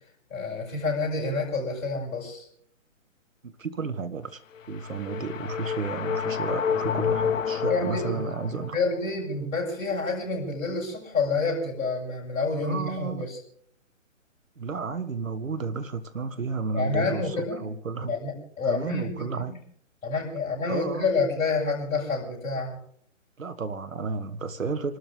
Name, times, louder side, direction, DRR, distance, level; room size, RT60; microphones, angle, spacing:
voice 1, 0.3-2.5 7.7-8.1 8.5-13.4 16.7-17.7 18.1-19.6 20.0-22.8, left 3 dB, 15° left, 7.8 m, -28 dB
voice 2, 3.4-4.4 4.7-8.8 12.6-13.3 14.6-18.2 18.6-19.6 20.7-21.1 23.4-25.0, right 4 dB, 75° right, 1.7 m, -32 dB
sound 1, 4.6-8.9, left 7 dB, 75° left, 0.6 m, -29 dB
28.5 x 13.0 x 3.5 m
figure-of-eight pair, 145°, 39 cm